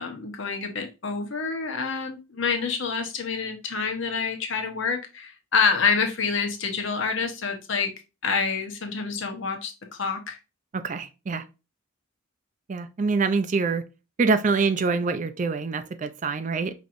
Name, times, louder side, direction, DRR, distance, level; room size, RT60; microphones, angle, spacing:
voice 1, 0.0-7.9 8.2-9.7 10.0-10.4, left 5 dB, 65° left, 0.9 m, -27 dB
voice 2, 10.7-11.4 12.7-13.8 14.2-16.7, right 4 dB, 35° right, 0.4 m, -25 dB
5.2 x 3.0 x 2.6 m
head